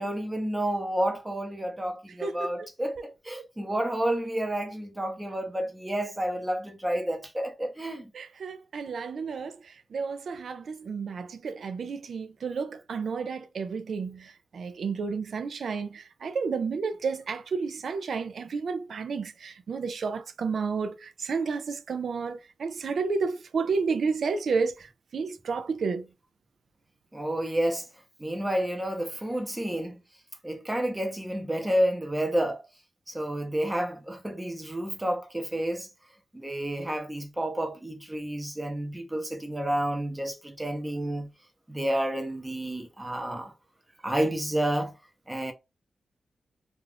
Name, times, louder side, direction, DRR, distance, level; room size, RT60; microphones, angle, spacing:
voice 1, 0.0-8.1 27.1-27.8 28.2-30.0 30.4-32.6 33.1-35.9 36.3-41.3 41.7-43.5 44.0-44.9 45.3-45.5, right 1 dB, 15° right, 0.8 m, -30 dB
voice 2, 2.2-2.7 3.4-3.5 8.1-26.1, right 5 dB, 70° right, 0.4 m, -31 dB
2.5 x 2.4 x 3.2 m
wide cardioid pair, 105°, 0 cm